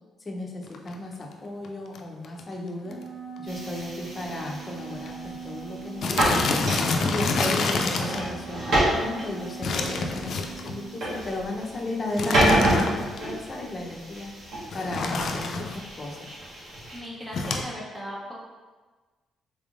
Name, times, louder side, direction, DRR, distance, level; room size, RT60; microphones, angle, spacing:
voice 1, 0.2-3.0 3.4-6.7 7.1-14.3 14.7-16.3, left 2 dB, 30° left, -1 dB, 0.7 m, -35 dB
sound 1, 0.7-1.0 1.6-1.7 1.9-2.0 2.2-2.5 2.9-3.0 3.4-3.5 4.2-4.3 4.5-4.7 5.1-5.2 6.0-8.3 9.6-10.8 12.2-13.2 14.7-15.8 17.3-17.6, left 3 dB, 65° left, 0.4 m, -27 dB
Wind instrument woodwind instrument, 2.8-11.0, right 7 dB, 80° right, 0.8 m, -41 dB
sound 2, 3.5-17.0, right 1 dB, 65° right, 1.4 m, -29 dB
voice 2, 16.9-18.3, equal, 15° right, -4 dB, 0.7 m, -37 dB
3.5 x 3.4 x 2.5 m, 1.3 s
cardioid pair, 90°, 0 cm